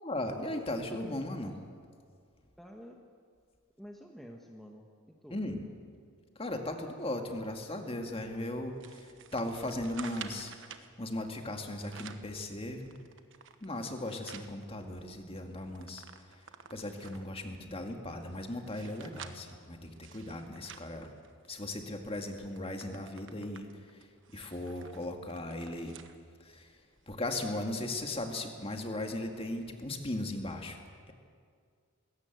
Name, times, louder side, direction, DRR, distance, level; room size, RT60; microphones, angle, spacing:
voice 1, 0.0-1.6 5.3-5.7 6.4-12.9 13.6-21.1 21.5-26.0 26.4-26.8 27.1-30.8, left 1 dB, 25° left, 4 dB, 2.0 m, -37 dB
voice 2, 2.6-3.0 3.8-5.4, equal, ahead, 1 dB, 1.2 m, -50 dB
sound 1, 8.8-10.9 11.6-12.3 12.8-14.5 15.0-15.1 15.3-17.3 17.9-21.7 22.1-22.2 22.6-26.2 26.6-26.7 27.5-27.6, right 7 dB, 60° right, 1.2 m, -50 dB
20.5 x 17.5 x 8.1 m, 2.1 s
head